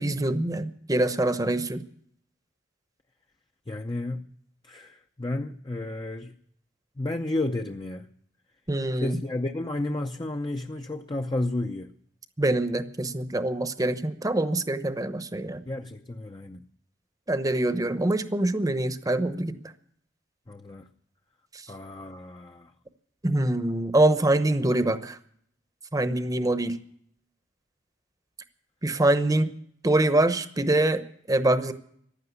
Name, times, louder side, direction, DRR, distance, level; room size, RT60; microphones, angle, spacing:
voice 1, 0.0-1.8 8.7-9.2 12.4-15.6 17.3-19.6 21.5-21.6 23.2-25.2 25.9-26.8 28.8-29.5 29.8-31.7, right 1 dB, 20° right, 0.9 m, -24 dB
voice 2, 3.7-4.3 4.6-6.3 7.0-8.1 9.0-11.9 15.7-16.6 20.5-20.9 21.7-22.7, left 2 dB, 25° left, 0.6 m, -32 dB
15.5 x 10.5 x 8.1 m
head